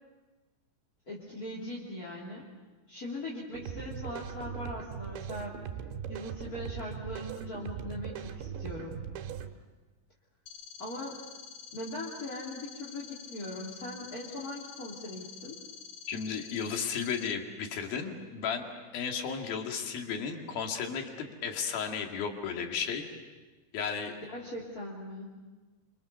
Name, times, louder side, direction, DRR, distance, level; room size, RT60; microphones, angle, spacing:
voice 1, 1.1-2.5 2.9-5.5 6.1-9.0 10.8-11.2 11.7-15.6 24.3-25.4, left 1 dB, 25° left, -5 dB, 2.7 m, -40 dB
sound 1, 3.5-9.5, right 8 dB, 85° right, 3.6 m, -40 dB
sound 2, 10.5-17.3, left 7 dB, 75° left, 3.5 m, -48 dB
voice 2, 16.1-18.7 18.9-23.1 23.7-24.2, left 6 dB, 60° left, 3 dB, 3.8 m, -34 dB
28.5 x 26.5 x 6.8 m, 1.3 s
omnidirectional pair, 5.1 m